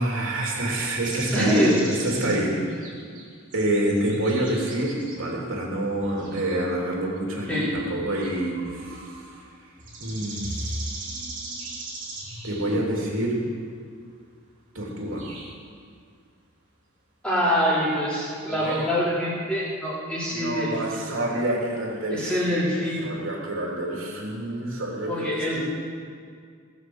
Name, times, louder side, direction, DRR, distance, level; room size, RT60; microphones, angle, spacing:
voice 1, 0.0-2.5 3.5-9.1 10.0-10.7 12.4-13.4 14.7-15.2 18.5-18.9 20.3-22.5 23.0-25.6, right 1 dB, 65° right, -3 dB, 3.1 m, -27 dB
sound 1, 1.0-2.4 2.7-5.3 5.9-9.5 9.8-12.7 14.9-15.0 15.2-15.5 17.4-17.7 18.4-18.9, right 2 dB, 35° right, 2.8 m, -38 dB
voice 2, 1.3-1.8 2.2-2.6 7.5-7.7 17.2-21.1 22.1-23.0 25.1-25.6, equal, 5° left, -9 dB, 3.9 m, -25 dB
18.5 x 6.2 x 8.0 m, 2.1 s
head